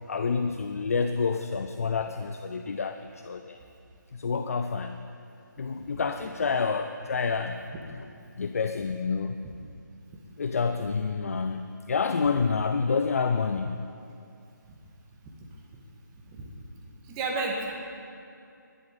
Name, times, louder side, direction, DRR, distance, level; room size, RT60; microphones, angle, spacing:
voice 1, 0.1-3.6 4.1-5.0 5.6-7.7 8.4-9.4 10.4-13.8, left 5 dB, 45° left, 8 dB, 0.5 m, -28 dB
voice 2, 17.0-17.7, right 3 dB, 15° right, -1 dB, 1.6 m, -32 dB
20.5 x 11.0 x 4.0 m, 2.6 s
figure-of-eight pair, 150°, 11 cm